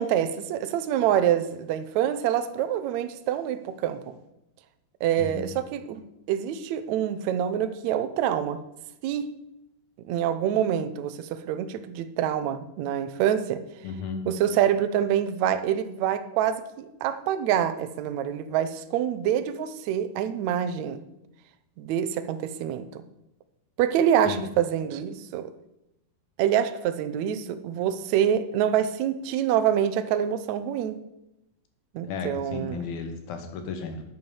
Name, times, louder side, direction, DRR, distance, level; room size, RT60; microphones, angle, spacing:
voice 1, 0.0-4.0 5.0-6.0 6.3-8.6 9.0-9.3 10.1-13.6 14.3-21.0 21.8-23.0 23.8-25.5 26.4-31.0 31.9-32.8, right 10 dB, 75° right, 10 dB, 1.7 m, -26 dB
voice 2, 5.2-5.5 13.8-14.3 24.3-24.4 32.0-34.0, left 5 dB, 85° left, 6 dB, 3.4 m, -34 dB
9.5 x 8.9 x 7.1 m, 0.89 s
omnidirectional pair, 4.1 m